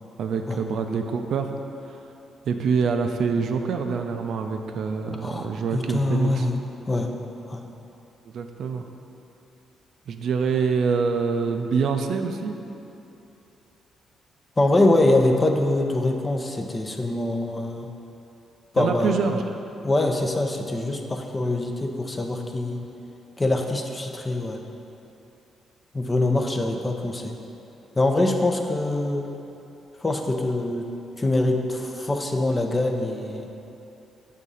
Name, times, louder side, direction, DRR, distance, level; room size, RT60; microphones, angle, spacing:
voice 1, 0.2-1.5 1.9-2.0 2.4-6.5 8.3-8.8 10.1-12.6 18.8-19.4, right 5 dB, 70° right, 5 dB, 0.4 m, -25 dB
voice 2, 5.2-6.6 6.9-7.1 7.5-7.6 14.6-17.9 18.7-19.2 19.8-22.8 23.4-24.6 25.9-27.3 27.9-29.3 30.0-30.9 31.2-33.5, left 2 dB, 25° left, 3 dB, 0.6 m, -24 dB
6.6 x 3.6 x 5.5 m, 2.9 s
cardioid pair, 80°, 0 cm